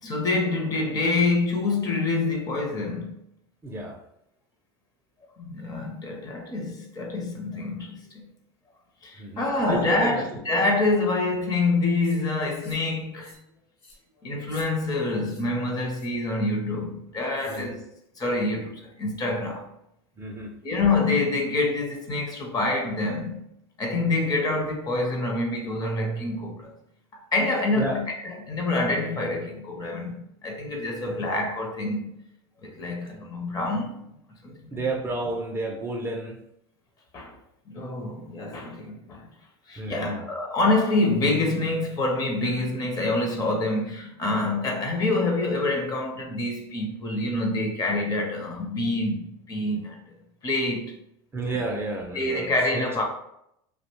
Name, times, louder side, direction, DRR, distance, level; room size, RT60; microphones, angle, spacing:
voice 1, 0.0-3.1 5.4-8.3 9.0-13.4 14.2-17.8 18.2-19.7 20.6-23.4 23.8-26.7 27.1-32.1 32.6-34.0 34.4-34.8 37.1-37.4 37.7-39.3 39.7-50.1 50.4-50.9 51.5-51.6 52.1-53.0, left 2 dB, 30° left, 0.6 m, -26 dB
voice 2, 3.6-4.0 9.2-10.4 17.5-17.8 20.2-20.5 27.7-28.0 31.1-31.3 34.7-36.4 39.8-40.2 51.3-52.9, right 2 dB, 15° right, 0.4 m, -32 dB
sound 1, 12.0-12.2 12.6-12.9 13.2-13.5 13.8-14.0 14.4-14.7 15.2-15.5 15.9-16.2 17.3-17.7, left 2 dB, 60° left, 1.0 m, -51 dB
2.6 x 2.1 x 3.0 m
supercardioid pair, 120°, 14 cm